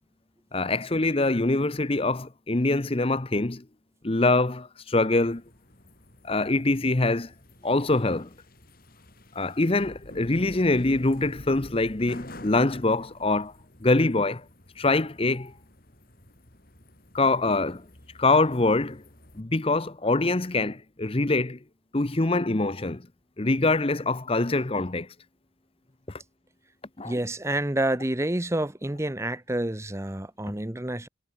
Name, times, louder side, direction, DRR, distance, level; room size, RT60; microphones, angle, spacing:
voice 1, 0.5-3.6 4.0-5.4 6.2-7.3 7.6-8.3 9.3-13.5 13.8-14.4 14.8-15.5 17.1-17.9 18.2-19.0 19.3-21.6 21.9-23.1 23.4-25.1 27.0-27.2, left 2 dB, 30° left, 0.8 m, -24 dB
sound 1, 5.2-19.4, left 1 dB, 45° left, 6.4 m, -49 dB
voice 2, 27.0-31.1, right 1 dB, 15° right, 0.9 m, -28 dB
head